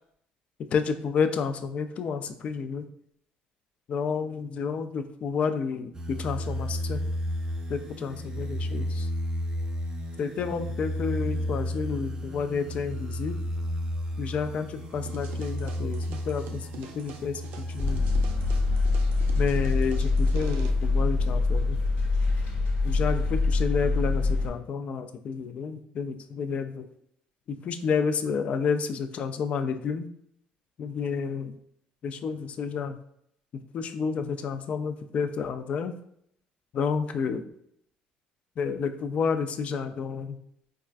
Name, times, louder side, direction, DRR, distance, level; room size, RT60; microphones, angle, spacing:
voice 1, 0.6-2.8 3.9-7.0 7.7-9.1 10.2-13.4 14.2-17.4 17.7-18.0 19.4-21.8 22.8-26.9 27.5-30.1 30.8-31.5 32.0-33.0 33.7-35.9 36.7-37.5 38.6-40.4, left 5 dB, 45° left, 8 dB, 0.3 m, -30 dB
sound 1, 5.9-21.2 21.7-22.8, equal, 25° right, 0.5 m, -34 dB
sound 2, 15.1-20.7, right 6 dB, 75° right, 0.4 m, -46 dB
sound 3, 17.8-24.5, left 3 dB, 80° left, 1.2 m, -24 dB
4.3 x 2.3 x 2.4 m, 0.71 s
cardioid pair, 120°, 3 cm